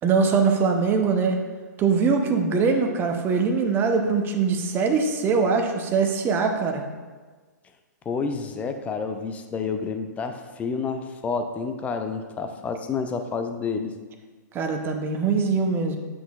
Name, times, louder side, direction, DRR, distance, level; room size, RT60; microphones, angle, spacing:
voice 1, 0.0-1.4 1.8-6.9 14.5-16.0, right 5 dB, 20° right, 4 dB, 0.7 m, -22 dB
voice 2, 8.1-13.9, left 5 dB, 15° left, 6 dB, 0.5 m, -29 dB
9.5 x 6.1 x 2.4 m, 1.4 s
hypercardioid pair, 130°, 10 cm